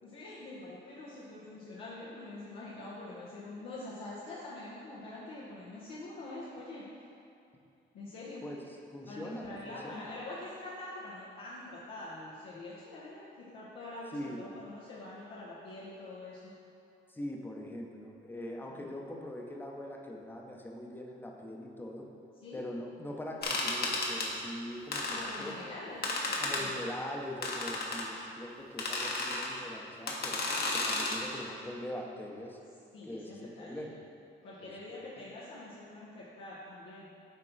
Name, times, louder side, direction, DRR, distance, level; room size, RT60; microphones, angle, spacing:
voice 1, 0.0-6.8 7.9-8.4 9.1-16.5 18.6-18.9 22.3-22.6 25.2-26.7 32.9-33.9 34.4-37.1, left 2 dB, 90° left, -9 dB, 1.2 m, -45 dB
voice 2, 8.9-10.1 14.1-14.4 17.1-22.1 22.5-25.8 26.4-30.4 30.7-32.6 33.0-34.0 34.6-35.2, left 1 dB, 10° left, 0 dB, 0.8 m, -42 dB
sound 1, 23.4-24.3 24.9-25.5 26.0-26.6 27.4-28.1 28.8-29.5 30.1-31.2, left 2 dB, 55° left, 1.1 m, -33 dB
7.6 x 4.4 x 4.1 m, 2.6 s
cardioid pair, 90°, 20 cm